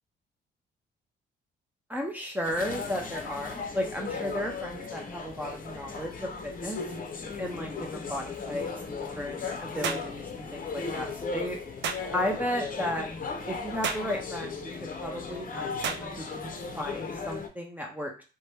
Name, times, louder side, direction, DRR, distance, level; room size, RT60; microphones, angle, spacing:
voice 1, 1.9-6.8 7.4-11.6 12.1-13.1 13.5-18.1, left 1 dB, 10° right, 0 dB, 0.5 m, -34 dB
sound 1, 2.4-17.5, left 4 dB, 45° left, 0.6 m, -37 dB
sound 2, 9.8-10.1 11.8-12.1 13.8-14.1 15.8-16.1, right 6 dB, 65° right, 0.4 m, -31 dB
2.7 x 2.2 x 3.3 m, 0.34 s
cardioid pair, 90°, 20 cm